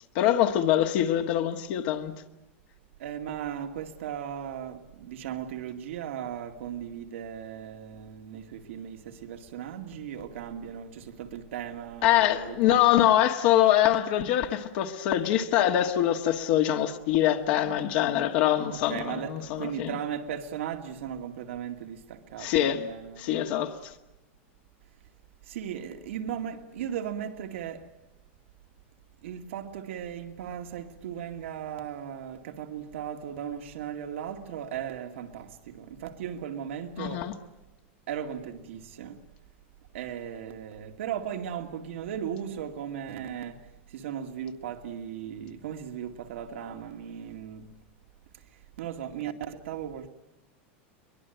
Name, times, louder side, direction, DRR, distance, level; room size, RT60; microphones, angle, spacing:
voice 1, 0.1-2.1 12.0-19.9 22.4-22.8 23.2-23.9 37.0-37.3, left 12 dB, 50° left, 1.6 m, -24 dB
voice 2, 3.0-12.8 18.7-23.4 25.4-27.9 29.2-37.3 38.1-39.2 39.9-43.6 43.9-47.7 48.8-50.1, right 9 dB, 85° right, 2.3 m, -37 dB
23.0 x 22.0 x 9.2 m
supercardioid pair, 165°, 7 cm